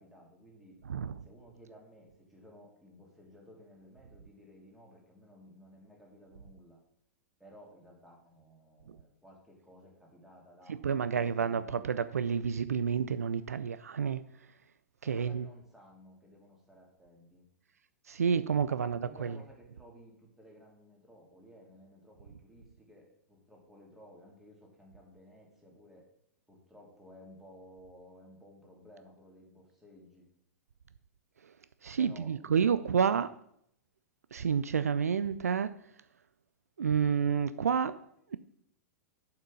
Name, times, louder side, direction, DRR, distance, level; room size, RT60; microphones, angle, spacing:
voice 1, 0.0-0.8 1.1-6.8 7.4-11.9 15.0-17.4 18.7-26.0 26.5-30.3 32.0-32.9, equal, 5° right, 3.1 m, -56 dB
voice 2, 0.8-1.2 8.9-9.0 10.7-14.3 15.0-15.5 18.1-19.4 31.4-31.5 31.8-33.4 34.3-35.8 36.8-38.4, right 7 dB, 70° right, 0.4 m, -30 dB
7.4 x 5.8 x 6.9 m
figure-of-eight pair, 100°, 8 cm